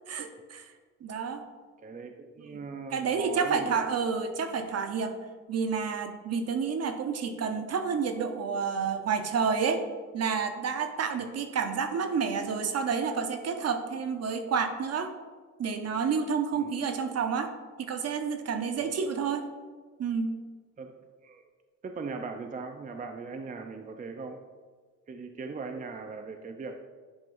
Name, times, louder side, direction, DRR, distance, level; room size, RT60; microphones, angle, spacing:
voice 1, 0.1-0.6 1.0-1.4 2.5-2.6 2.9-5.1 5.5-9.8 10.1-15.1 15.6-17.5 17.8-19.5 20.0-20.4, right 6 dB, 55° right, 6 dB, 0.9 m, -29 dB
voice 2, 1.8-3.9 11.2-11.3 16.5-16.7 18.8-18.9 20.8-20.9 21.2-21.4 21.8-24.4 25.1-26.7, right 4 dB, 25° right, 5 dB, 0.6 m, -39 dB
10.5 x 5.3 x 2.6 m, 1.5 s
cardioid pair, 90°, 30 cm